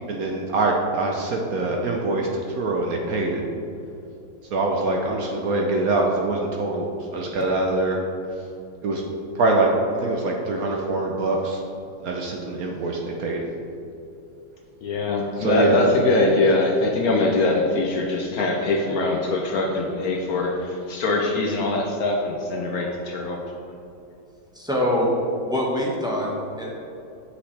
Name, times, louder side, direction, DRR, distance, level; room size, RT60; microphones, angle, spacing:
voice 1, 0.1-2.3 2.6-3.4 4.5-8.0 8.8-9.0 9.3-9.7 10.0-11.6 12.0-13.5 15.4-15.8, right 2 dB, 65° right, 0 dB, 1.0 m, -24 dB
voice 2, 14.8-23.4, left 2 dB, 65° left, 1 dB, 1.0 m, -22 dB
voice 3, 24.5-25.1 25.4-26.7, left 1 dB, 5° right, -4 dB, 0.6 m, -24 dB
7.7 x 6.1 x 3.3 m, 2.8 s
omnidirectional pair, 2.0 m